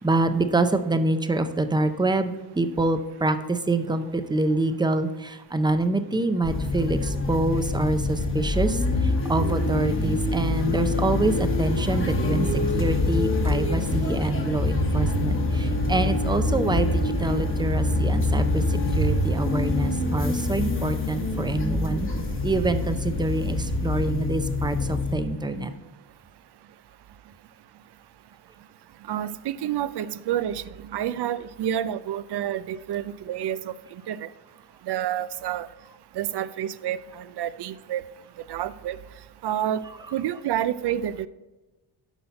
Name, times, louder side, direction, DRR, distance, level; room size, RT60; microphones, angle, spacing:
voice 1, 0.0-22.1 22.4-25.7, right 2 dB, 10° right, 9 dB, 0.5 m, -26 dB
sound 1, 6.4-25.1, left 2 dB, 25° left, 1.1 m, -25 dB
voice 2, 29.1-30.6 30.9-33.7 34.1-34.3 34.9-35.7 36.2-38.0 38.5-39.0 39.4-39.8 40.1-41.3, right 11 dB, 60° right, 15 dB, 0.5 m, -28 dB
8.2 x 5.6 x 4.3 m, 1.1 s
cardioid pair, 90°, 46 cm